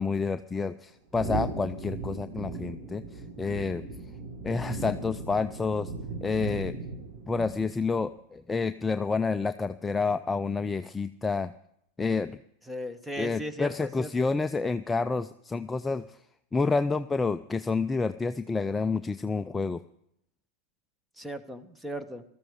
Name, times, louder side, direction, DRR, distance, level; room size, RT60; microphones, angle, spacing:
voice 1, 0.0-3.8 4.4-5.9 6.2-6.7 7.3-11.5 12.0-12.4 13.2-16.2 16.5-19.8, left 4 dB, 15° left, 10 dB, 0.4 m, -29 dB
sound 1, 1.1-7.9, right 3 dB, 60° right, 5.1 m, -37 dB
voice 2, 12.7-14.3 21.2-22.2, equal, 5° right, 11 dB, 1.3 m, -37 dB
15.5 x 14.0 x 4.8 m, 0.75 s
hypercardioid pair, 110°, 0 cm